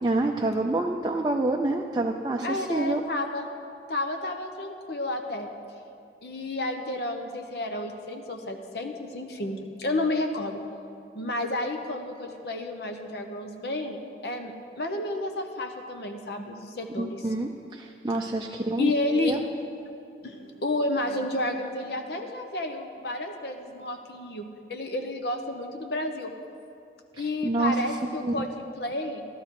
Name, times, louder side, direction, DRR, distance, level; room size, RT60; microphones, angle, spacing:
voice 1, 0.0-3.0 17.0-19.4 27.2-27.8 28.2-28.5, right 2 dB, 20° right, 1 dB, 0.5 m, -27 dB
voice 2, 2.4-3.5 3.9-5.5 6.2-10.6 11.1-14.0 14.2-17.2 18.2-18.3 18.8-19.4 20.2-26.3 27.2-29.3, left 2 dB, 60° left, 4 dB, 0.9 m, -31 dB
13.5 x 12.5 x 4.8 m, 2.5 s
head